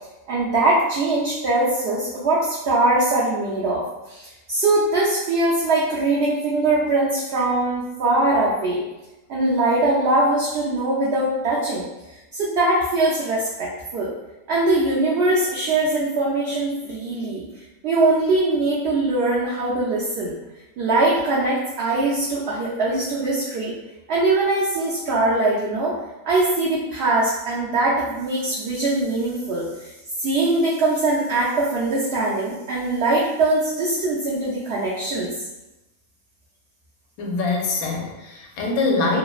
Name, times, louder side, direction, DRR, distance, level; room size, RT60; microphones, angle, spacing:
voice 1, 0.3-8.8 9.3-11.9 12.3-14.1 14.5-17.4 17.8-20.3 20.8-23.8 24.1-26.0 26.2-29.9 30.2-35.3, right 2 dB, 65° right, -6 dB, 0.6 m, -22 dB
voice 2, 37.2-39.2, left 3 dB, 80° left, 0 dB, 1.1 m, -23 dB
3.0 x 2.2 x 2.3 m, 1.0 s
omnidirectional pair, 1.5 m